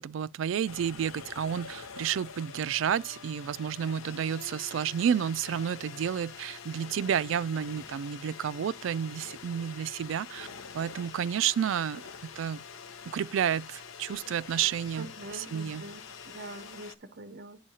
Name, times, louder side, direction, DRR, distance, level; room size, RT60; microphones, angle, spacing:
voice 1, 0.0-10.5 10.7-12.6 13.1-15.9, right 8 dB, 65° right, 0.3 m, -31 dB
sound 1, 0.7-17.0, left 6 dB, 85° left, 0.7 m, -46 dB
voice 2, 14.9-17.6, right 2 dB, 50° right, 0.7 m, -44 dB
9.7 x 5.4 x 2.8 m
head